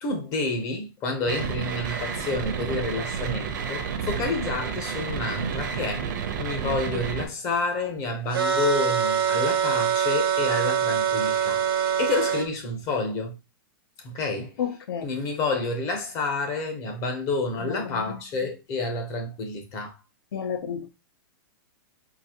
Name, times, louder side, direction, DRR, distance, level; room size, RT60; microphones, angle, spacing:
voice 1, 0.0-6.1 6.4-13.3 14.0-14.6 15.0-19.9, left 3 dB, 25° left, 0.7 m, -29 dB
sound 1, 1.3-7.3, right 6 dB, 55° right, 0.7 m, -30 dB
sound 2, 8.3-12.5, right 8 dB, 75° right, 0.9 m, -24 dB
voice 2, 14.6-15.1 17.6-18.2 20.3-20.9, left 8 dB, 90° left, 0.7 m, -31 dB
3.9 x 2.6 x 2.9 m
supercardioid pair, 170°, 12 cm